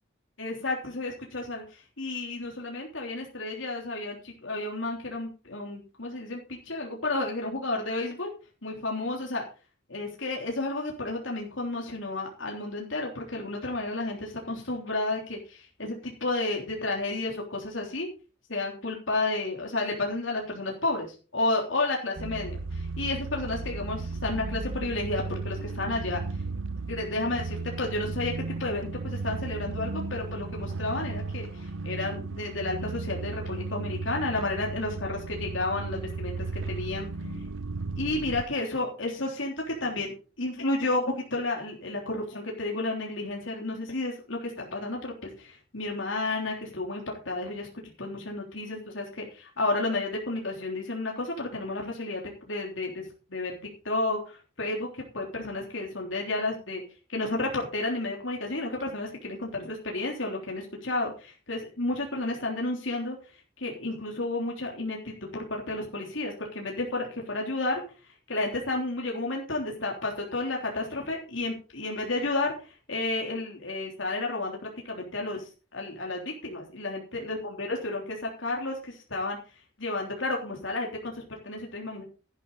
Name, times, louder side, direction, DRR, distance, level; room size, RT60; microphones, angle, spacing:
voice 1, 0.4-8.3 8.6-9.4 9.9-18.1 18.5-26.2 26.9-28.3 28.6-37.5 37.9-47.7 48.0-53.5 53.8-56.8 57.1-63.2 63.6-67.8 68.3-74.6 74.8-79.4 79.8-82.0, left 2 dB, 80° left, -1 dB, 3.5 m, -32 dB
sound 1, 22.2-38.4, right 3 dB, 85° right, 0.9 m, -35 dB
12.5 x 11.0 x 4.1 m, 0.34 s
head